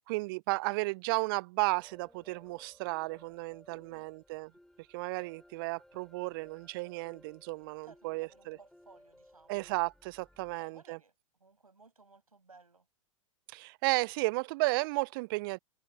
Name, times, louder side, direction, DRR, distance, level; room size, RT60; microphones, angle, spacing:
voice 1, 0.0-4.5 4.9-8.6 9.5-11.0 13.5-15.6, right 25 dB, 40° right, 0.5 m, -33 dB
sound 1, 1.7-10.6, left 1 dB, ahead, 3.5 m, -61 dB
voice 2, 3.7-4.1 7.8-9.6 10.4-12.9, right 4 dB, 85° right, 6.7 m, -60 dB
figure-of-eight pair, 105°, 18 cm